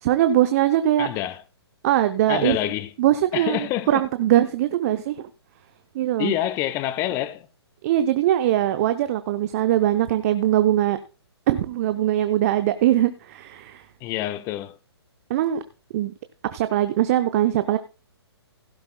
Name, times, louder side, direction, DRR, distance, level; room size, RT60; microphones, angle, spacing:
voice 1, 0.0-1.1 1.8-2.6 3.0-5.3 5.9-6.3 7.8-11.0 11.5-13.8 15.3-15.6 15.9-16.1 16.5-17.8, right 12 dB, 35° right, 0.6 m, -21 dB
voice 2, 1.0-1.4 2.3-2.9 3.3-4.0 6.2-7.5 14.0-14.8, left 13 dB, 20° left, 0.7 m, -27 dB
16.5 x 11.0 x 2.2 m
figure-of-eight pair, 130°, 14 cm